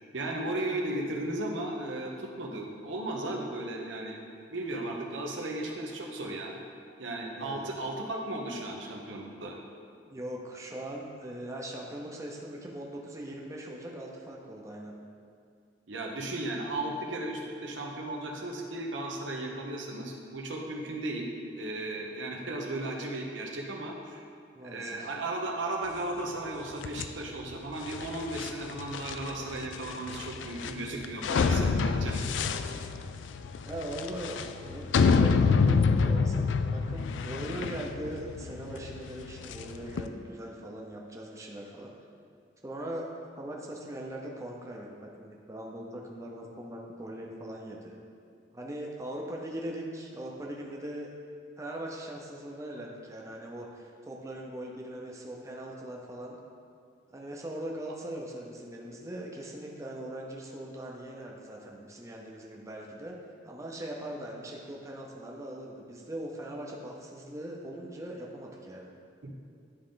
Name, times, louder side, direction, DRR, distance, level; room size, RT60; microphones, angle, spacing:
voice 1, 0.1-4.2 4.5-6.6 7.0-9.6 15.9-21.3 21.5-24.3 24.6-32.2 69.2-69.4, right 2 dB, 90° right, 0 dB, 0.9 m, -35 dB
voice 2, 7.4-7.7 10.1-14.9 24.6-25.1 32.1-32.3 32.5-32.6 33.6-36.5 36.7-41.9 42.6-43.1 43.3-48.0 48.5-51.1 51.6-56.4 57.1-63.2 63.4-68.9, right 1 dB, 15° right, -1 dB, 0.7 m, -40 dB
sound 1, 26.8-40.1, left 5 dB, 75° left, 0.3 m, -28 dB
10.5 x 3.8 x 3.8 m, 2.3 s
head